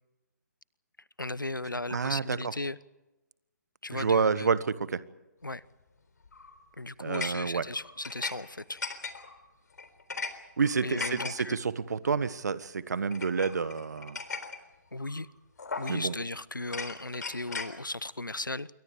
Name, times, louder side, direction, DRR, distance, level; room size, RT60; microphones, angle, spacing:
voice 1, 1.2-2.8 3.8-4.5 5.4-5.6 6.8-8.8 10.8-11.6 14.9-15.3 15.8-18.7, left 2 dB, 85° left, 20 dB, 1.0 m, -36 dB
voice 2, 1.9-2.4 3.9-5.0 7.0-7.7 10.6-14.2 15.9-16.1, right 5 dB, 60° right, 15 dB, 1.5 m, -29 dB
sound 1, 6.2-6.6 7.1-8.3 8.6-9.4 9.8-10.3 10.6-11.3 12.0-12.3 13.1-14.6 15.0-15.2 15.6-16.2 16.6-17.7, left 4 dB, 60° left, 3.8 m, -38 dB
28.0 x 23.5 x 5.0 m, 1.0 s
figure-of-eight pair, 135°, 10 cm